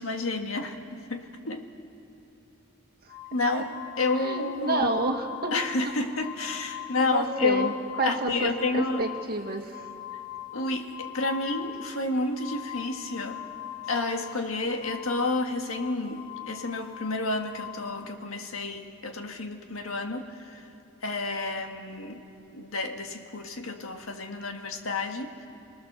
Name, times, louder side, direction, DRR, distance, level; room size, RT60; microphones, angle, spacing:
voice 1, 0.0-1.6 3.3-3.7 4.0-4.9 5.5-7.8 8.0-9.0 10.5-13.4 13.9-20.6 21.0-22.2 22.5-25.5, left 2 dB, 70° left, 4 dB, 1.8 m, -30 dB
sound 1, 3.1-18.0, left 14 dB, 35° left, 1.9 m, -41 dB
voice 2, 4.2-5.6 7.0-7.7 8.0-9.9, right 2 dB, 45° right, 3 dB, 1.8 m, -29 dB
28.5 x 19.5 x 6.9 m, 2.8 s
head